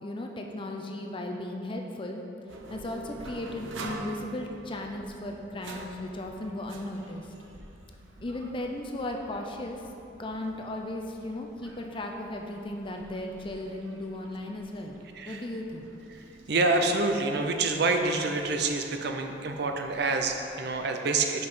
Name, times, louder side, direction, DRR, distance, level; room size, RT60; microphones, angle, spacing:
voice 1, 0.0-2.2 2.7-7.3 8.2-9.8 10.2-15.0 15.3-15.9, left 1 dB, 25° left, 2 dB, 0.5 m, -36 dB
sound 1, 2.5-20.9, right 2 dB, 90° right, 0.7 m, -48 dB
voice 2, 15.1-15.5 16.5-21.5, right 3 dB, 60° right, 4 dB, 0.6 m, -27 dB
5.4 x 5.4 x 6.0 m, 2.8 s
head